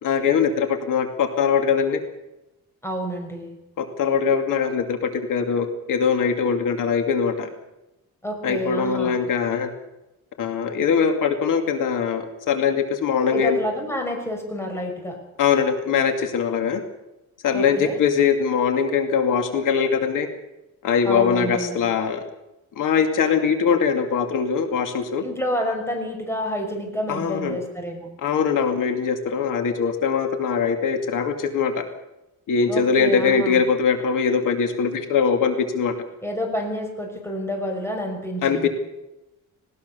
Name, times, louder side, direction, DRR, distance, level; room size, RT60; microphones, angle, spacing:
voice 1, 0.0-2.0 3.8-7.5 8.4-9.7 10.4-13.6 15.4-16.8 17.4-20.3 20.8-22.2 22.8-25.2 27.1-27.6 28.2-31.9 32.5-36.0 38.4-38.7, left 6 dB, 85° left, 6 dB, 2.5 m, -22 dB
voice 2, 2.8-3.5 8.2-9.2 13.3-15.2 17.5-18.0 21.0-21.8 25.2-28.1 32.7-33.6 36.2-38.7, equal, 10° left, 3 dB, 5.8 m, -29 dB
19.5 x 19.0 x 7.0 m, 0.93 s
cardioid pair, 135°, 31 cm